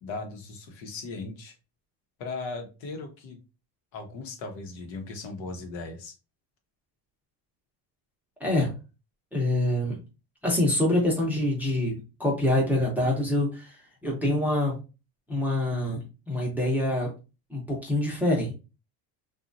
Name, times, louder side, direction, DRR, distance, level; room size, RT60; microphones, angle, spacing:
voice 1, 0.0-1.6 2.2-3.4 3.9-6.1, left 3 dB, 65° left, 4 dB, 0.9 m, -37 dB
voice 2, 8.4-8.7 9.3-10.0 10.4-13.8 14.0-14.8 15.3-17.1 17.5-18.5, left 1 dB, 5° right, -3 dB, 0.7 m, -25 dB
2.9 x 2.4 x 2.5 m, 0.30 s
cardioid pair, 140°, 48 cm